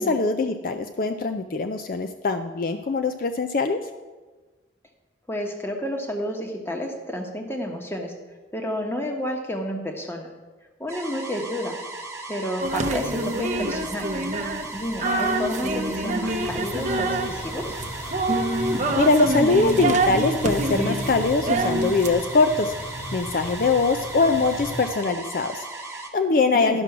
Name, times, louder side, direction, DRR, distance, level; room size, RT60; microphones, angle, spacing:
voice 1, 0.0-3.8 19.0-22.7 23.1-26.8, left 3 dB, 50° left, 6 dB, 0.4 m, -22 dB
voice 2, 5.3-8.1 8.5-10.3 10.8-11.8 12.3-14.1 14.7-17.8 26.5-26.8, equal, 15° left, 2 dB, 1.1 m, -30 dB
sound 1, 10.9-26.1, right 3 dB, 15° right, 1.1 m, -37 dB
sound 2, 12.6-22.1, right 2 dB, 40° right, 0.7 m, -26 dB
sound 3, 16.3-24.9, left 1 dB, 75° left, 1.6 m, -36 dB
11.5 x 6.1 x 5.9 m, 1.3 s
head